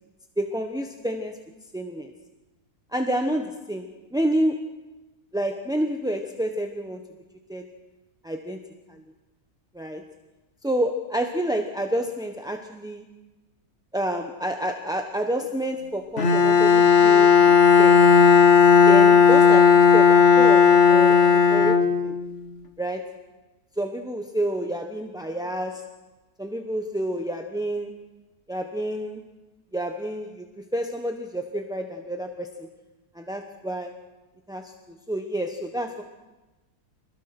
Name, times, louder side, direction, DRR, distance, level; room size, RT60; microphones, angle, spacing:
voice 1, 0.4-1.4 1.7-2.1 2.9-4.8 5.3-7.0 7.5-7.7 8.2-8.6 8.9-9.0 9.7-10.1 10.6-13.0 13.9-18.0 18.9-21.2 21.5-21.8 22.0-22.1 22.8-23.1 23.8-25.8 26.4-27.9 28.5-29.2 29.7-30.5 30.7-32.7 33.1-33.9 34.5-34.7 35.1-36.0, right 1 dB, 5° right, 4 dB, 0.8 m, -29 dB
Bowed string instrument, 16.2-22.3, left 6 dB, 50° left, 1.5 m, -15 dB
26.5 x 20.5 x 5.9 m, 1.1 s
omnidirectional pair, 1.7 m